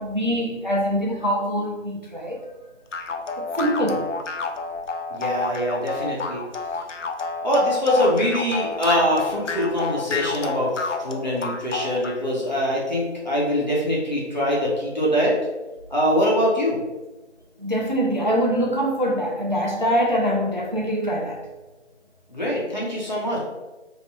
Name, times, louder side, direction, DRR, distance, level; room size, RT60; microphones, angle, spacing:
voice 1, 0.0-2.5 3.4-4.1 17.6-21.5, equal, 40° right, -1 dB, 0.5 m, -24 dB
sound 1, 2.9-12.2, left 4 dB, 85° left, 0.6 m, -29 dB
voice 2, 5.1-6.4 7.4-15.4 15.9-16.8 22.3-23.5, equal, 40° left, -5 dB, 1.1 m, -23 dB
3.1 x 3.0 x 4.1 m, 1.1 s
figure-of-eight pair, 175°, 36 cm